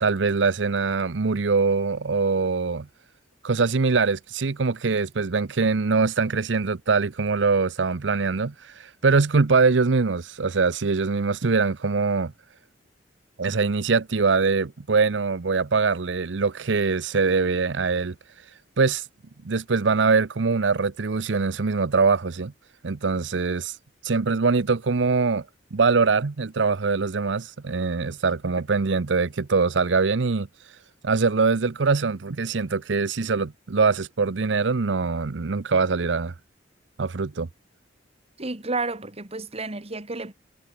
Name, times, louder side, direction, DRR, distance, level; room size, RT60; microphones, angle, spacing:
voice 1, 0.0-2.9 3.4-12.3 13.4-18.1 18.8-19.1 19.4-22.5 22.8-23.8 24.0-25.5 25.7-30.5 31.0-36.3 37.0-37.5, right 4 dB, 75° right, 0.7 m, -23 dB
voice 2, 38.4-40.3, right 3 dB, 35° right, 2.1 m, -31 dB
head